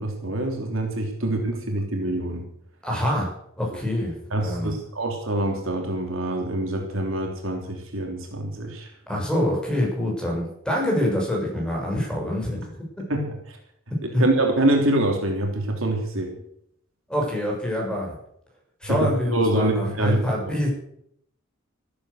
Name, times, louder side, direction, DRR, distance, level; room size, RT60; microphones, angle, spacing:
voice 1, 0.0-2.4 4.3-8.9 13.1-13.6 14.2-16.4 18.9-20.3, right 1 dB, 70° right, 2 dB, 3.4 m, -25 dB
voice 2, 2.8-4.2 4.4-4.8 9.1-12.8 14.1-14.2 17.1-18.1 18.8-20.7, left 1 dB, 5° left, -2 dB, 6.9 m, -25 dB
14.0 x 13.5 x 6.6 m, 0.71 s
head